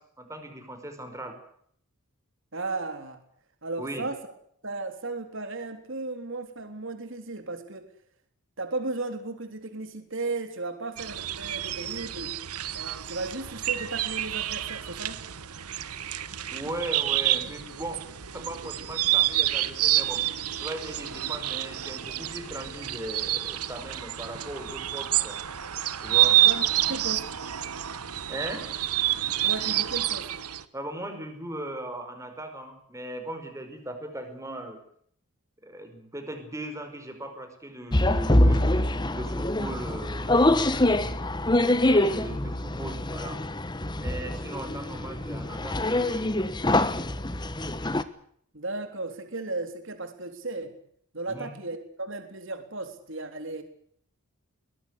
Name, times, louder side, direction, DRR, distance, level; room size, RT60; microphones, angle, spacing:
voice 1, 0.2-1.3 3.8-4.1 16.5-18.1 18.3-20.2 20.6-25.4 26.0-26.4 28.3-28.7 30.7-34.8 35.6-41.0 41.9-43.4 44.0-46.4 51.3-51.5, right 1 dB, 15° right, 6 dB, 5.1 m, -38 dB
voice 2, 2.5-3.2 3.6-4.2 4.6-7.9 8.6-12.4 12.7-15.2 26.4-26.6 26.9-27.4 29.4-30.3 48.5-50.7 51.1-53.6, right 3 dB, 55° right, 6 dB, 3.6 m, -35 dB
sound 1, 11.0-30.6, right 14 dB, 85° right, 1.3 m, -28 dB
sound 2, 37.9-48.0, left 1 dB, 20° left, 1.1 m, -25 dB
22.5 x 19.0 x 8.2 m, 0.65 s
head